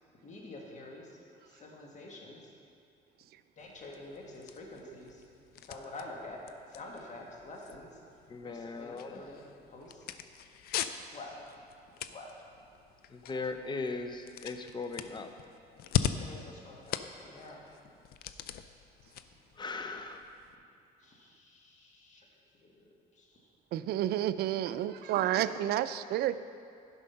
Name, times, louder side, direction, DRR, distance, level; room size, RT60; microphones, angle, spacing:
voice 1, 0.2-1.2 1.5-2.4 3.6-5.2 5.6-6.5 6.7-7.9 8.4-9.4 9.7-10.0 11.1-11.4 12.1-12.3 13.2-13.3 16.2-17.6 21.0-22.3 22.5-22.9 23.2-23.3 25.0-25.4, left 2 dB, 45° left, -1 dB, 1.7 m, -47 dB
sound 1, 3.6-20.6, left 10 dB, 65° left, 0.5 m, -41 dB
voice 2, 8.3-9.2 13.1-15.3 19.6-20.2, left 3 dB, 25° left, 7 dB, 0.7 m, -38 dB
voice 3, 23.7-26.4, right 12 dB, 70° right, 13 dB, 0.4 m, -30 dB
11.0 x 5.2 x 5.6 m, 2.5 s
cardioid pair, 110°, 17 cm